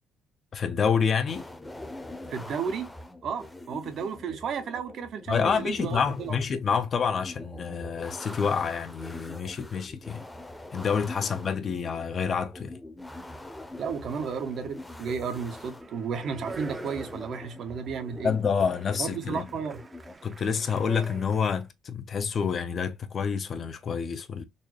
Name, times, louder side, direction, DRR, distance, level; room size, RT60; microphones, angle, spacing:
voice 1, 0.5-1.5 5.3-10.2 10.7-12.7 18.2-19.5 20.2-24.4, left 6 dB, 50° left, 0.5 m, -28 dB
sound 1, 1.3-20.1, left 2 dB, 10° left, 0.7 m, -43 dB
voice 2, 2.3-2.9 3.2-6.4 13.8-18.3 19.0-19.8, right 6 dB, 65° right, 0.7 m, -33 dB
Speech, 15.8-21.6, right 4 dB, 30° right, 0.5 m, -45 dB
4.0 x 2.2 x 3.2 m
cardioid pair, 80°, 0 cm